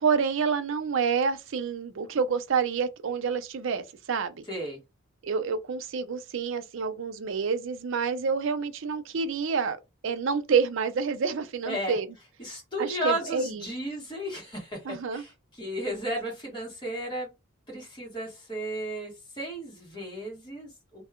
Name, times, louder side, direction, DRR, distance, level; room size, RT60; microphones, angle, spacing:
voice 1, 0.0-4.4 5.2-9.8 10.0-12.1 12.8-13.6 14.8-15.2, right 5 dB, 65° right, 0.4 m, -28 dB
voice 2, 4.5-4.8 11.6-12.0 12.4-17.3 17.7-21.0, right 1 dB, 20° left, 1.4 m, -34 dB
2.7 x 2.3 x 3.6 m
head